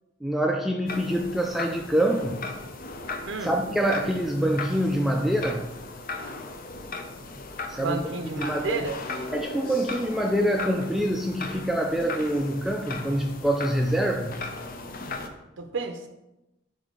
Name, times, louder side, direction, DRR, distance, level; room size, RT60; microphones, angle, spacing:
voice 1, 0.2-2.4 3.4-5.7 7.7-8.0 8.4-8.9 9.3-14.4, right 1 dB, ahead, 1 dB, 0.3 m, -25 dB
sound 1, 0.9-15.3, left 3 dB, 50° left, 0.6 m, -37 dB
voice 2, 7.8-9.0 15.6-16.1, right 3 dB, 70° right, 5 dB, 0.5 m, -31 dB
5.3 x 5.2 x 3.8 m, 0.94 s
head